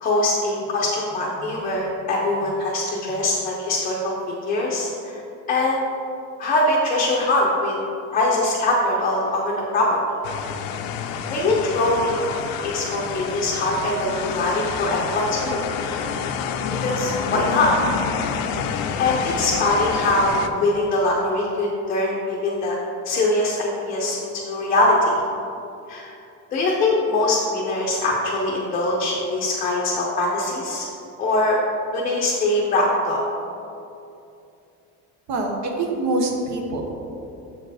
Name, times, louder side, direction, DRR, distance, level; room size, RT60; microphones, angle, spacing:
voice 1, 0.0-4.1 4.4-5.2 5.5-5.8 6.4-7.8 8.1-10.0 11.3-16.2 16.8-17.7 19.0-22.7 23.0-25.1 25.9-26.1 26.5-30.9 31.2-31.6 31.9-33.2, left 2 dB, 25° left, -4 dB, 0.7 m, -22 dB
sound 1, 10.2-20.5, left 7 dB, 70° left, 0.6 m, -28 dB
voice 2, 35.3-36.9, right 2 dB, 50° right, 2 dB, 1.0 m, -25 dB
7.0 x 4.5 x 4.9 m, 2.7 s
cardioid pair, 180°, 35 cm